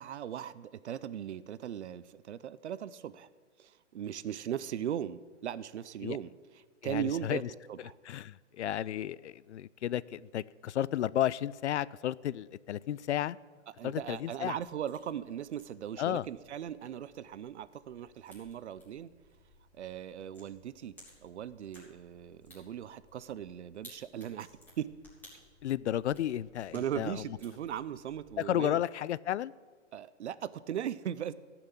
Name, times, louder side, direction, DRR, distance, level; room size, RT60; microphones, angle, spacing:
voice 1, 0.0-3.3 3.6-7.4 7.7-8.0 13.7-19.1 19.7-21.0 21.2-24.5 24.8-24.9 26.7-28.8 29.9-31.3, right 10 dB, 65° right, 17 dB, 0.7 m, -38 dB
voice 2, 6.8-7.4 8.1-13.4 13.8-14.6 16.0-16.3 25.6-27.1 28.4-29.5, left 11 dB, 70° left, 20 dB, 0.5 m, -33 dB
sound 1, 13.7-28.5, left 1 dB, 5° left, 3.4 m, -60 dB
14.5 x 6.0 x 8.3 m, 1.5 s
hypercardioid pair, 150°, 37 cm